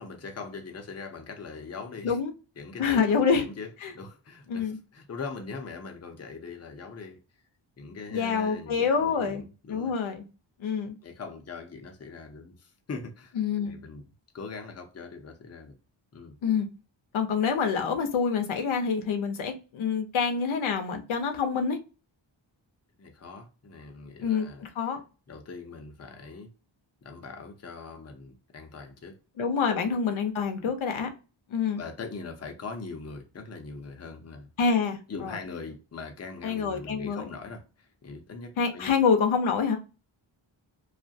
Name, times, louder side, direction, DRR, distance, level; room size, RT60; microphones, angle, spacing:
voice 1, 0.0-2.2 2.6-7.2 7.8-9.9 11.0-14.1 14.3-15.7 16.1-16.4 23.0-24.7 25.3-26.5 27.0-29.2 29.8-30.0 30.6-30.7 31.8-34.5 35.1-39.0, left 4 dB, 35° left, 0.6 m, -41 dB
voice 2, 2.8-3.4 3.8-3.9 4.5-4.8 8.1-9.4 9.7-10.3 10.6-10.9 13.4-13.8 16.4-16.7 17.1-21.8 24.2-25.0 29.4-31.1 31.5-31.8 34.6-35.4 36.4-37.2 38.6-39.8, left 6 dB, 90° left, 0.6 m, -26 dB
2.4 x 2.1 x 2.5 m
wide cardioid pair, 85°, 47 cm